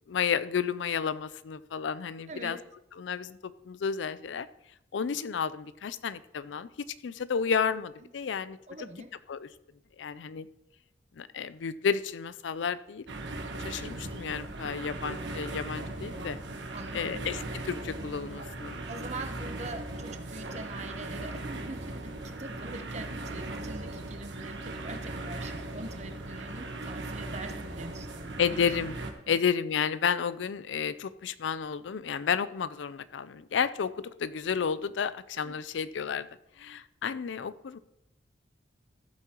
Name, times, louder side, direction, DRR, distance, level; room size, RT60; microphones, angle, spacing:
voice 1, 0.1-2.6 3.0-4.5 4.9-6.7 7.0-8.6 9.3-9.5 10.0-10.5 11.2-13.0 13.6-16.4 16.9-18.8 28.4-29.0 29.3-36.3 36.6-37.8, left 6 dB, 90° left, 15 dB, 0.4 m, -31 dB
voice 2, 2.3-2.6 8.0-8.1 8.7-9.1 16.7-17.2 18.9-28.6 29.3-29.4 35.4-35.6, right 2 dB, 40° right, 7 dB, 0.9 m, -43 dB
sound 1, 13.1-29.1, right 2 dB, 80° right, 1.2 m, -38 dB
14.5 x 8.3 x 2.9 m, 0.83 s
head